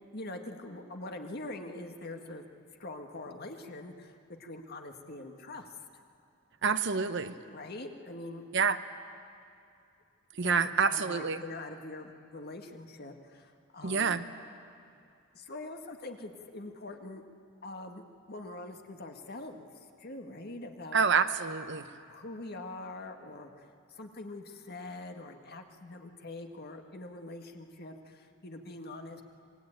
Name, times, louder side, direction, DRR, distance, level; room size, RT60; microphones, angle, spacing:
voice 1, 0.1-2.4 2.8-5.7 7.5-8.4 10.4-14.2 15.3-17.2 17.6-19.7 20.0-21.0 22.1-29.2, left 2 dB, 50° left, 4 dB, 1.9 m, -44 dB
voice 2, 6.6-7.3 8.5-8.8 10.4-11.4 13.8-14.2 20.9-21.8, right 5 dB, 60° right, 11 dB, 0.9 m, -27 dB
25.5 x 20.5 x 9.1 m, 2.4 s
head